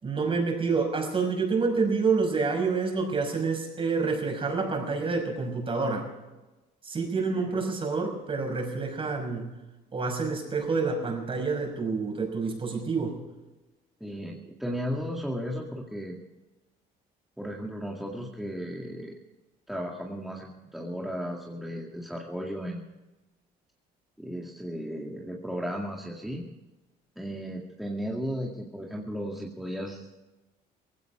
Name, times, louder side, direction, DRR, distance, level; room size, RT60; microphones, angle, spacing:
voice 1, 0.0-6.1 6.8-9.5 9.9-13.2, right 4 dB, 30° right, 3 dB, 5.8 m, -28 dB
voice 2, 14.0-16.2 17.4-19.2 19.7-22.8 24.2-26.5 27.2-30.2, equal, ahead, -2 dB, 2.1 m, -35 dB
18.5 x 16.5 x 4.8 m, 1.1 s
cardioid pair, 110°, 17 cm